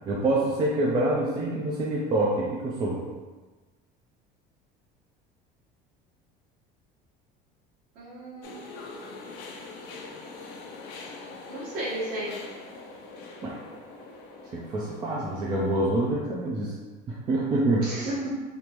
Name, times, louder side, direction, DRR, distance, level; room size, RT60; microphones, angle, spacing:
voice 1, 0.1-3.0 13.4-13.6 14.5-16.8 17.1-17.9, right 2 dB, 25° right, -4 dB, 0.3 m, -26 dB
voice 2, 7.9-8.6 11.5-12.4 17.8-18.3, right 1 dB, 55° right, -8 dB, 1.4 m, -33 dB
sound 1, 8.4-16.2, left 3 dB, 55° left, 0.4 m, -43 dB
3.4 x 2.5 x 2.9 m, 1.3 s
cardioid pair, 165°, 19 cm